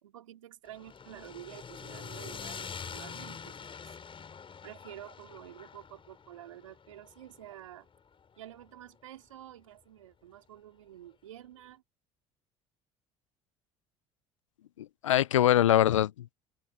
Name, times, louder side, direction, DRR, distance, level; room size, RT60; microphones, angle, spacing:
voice 1, 0.0-4.0 4.6-7.9 8.4-11.8, right 12 dB, 85° right, 3.2 m, -49 dB
sound 1, 0.7-8.9, left 6 dB, 35° left, 7.6 m, -45 dB
voice 2, 14.8-16.3, left 12 dB, 85° left, 0.5 m, -24 dB
open air
hypercardioid pair, 65°, 16 cm